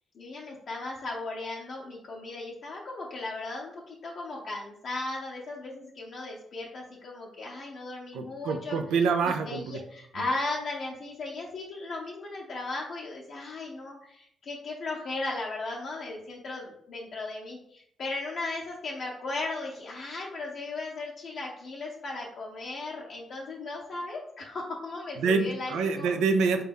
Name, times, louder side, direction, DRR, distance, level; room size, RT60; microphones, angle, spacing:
voice 1, 0.1-8.8 9.3-26.1, left 2 dB, 60° left, -4 dB, 0.6 m, -36 dB
voice 2, 8.1-9.8 25.2-26.6, right 5 dB, 90° right, 6 dB, 0.3 m, -26 dB
4.1 x 2.2 x 3.4 m, 0.73 s
cardioid pair, 70°, 0 cm